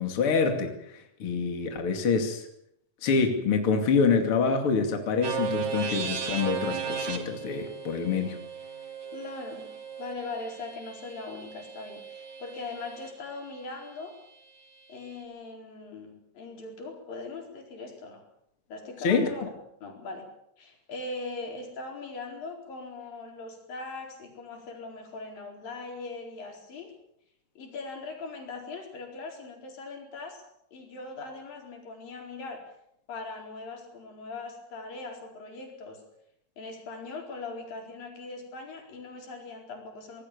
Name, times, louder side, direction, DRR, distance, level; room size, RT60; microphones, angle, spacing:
voice 1, 0.0-2.4 3.0-8.4 19.0-19.3, left 5 dB, 40° left, 4 dB, 3.1 m, -26 dB
sound 1, 5.2-13.1, right 6 dB, 55° right, 3.4 m, -36 dB
voice 2, 9.1-14.2 14.9-18.2 18.7-19.5 19.8-20.3 20.6-26.9 27.6-30.4 30.7-32.6 33.1-36.0 36.6-40.2, left 3 dB, 85° left, 1 dB, 6.2 m, -40 dB
25.5 x 19.5 x 6.9 m, 0.77 s
omnidirectional pair, 3.9 m